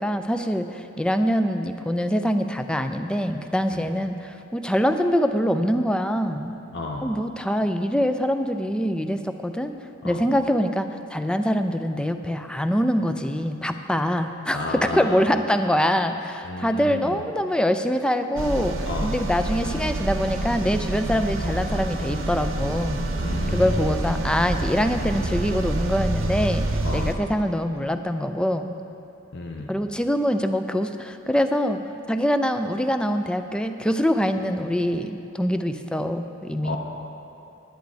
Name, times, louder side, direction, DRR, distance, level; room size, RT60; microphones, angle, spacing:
voice 1, 0.0-6.5 7.0-9.7 10.0-23.0 23.5-26.7 26.9-28.7 29.7-31.8 32.1-36.8, equal, 5° left, 8 dB, 0.4 m, -24 dB
voice 2, 6.7-7.1 10.0-10.2 14.5-15.2 16.4-17.2 18.8-19.1 23.2-24.0 26.8-27.1 29.3-29.7 36.6-36.8, left 2 dB, 60° left, 1 dB, 0.8 m, -31 dB
sound 1, 18.4-27.2, right 1 dB, 80° right, 0.9 m, -27 dB
10.5 x 10.5 x 5.0 m, 2.9 s
head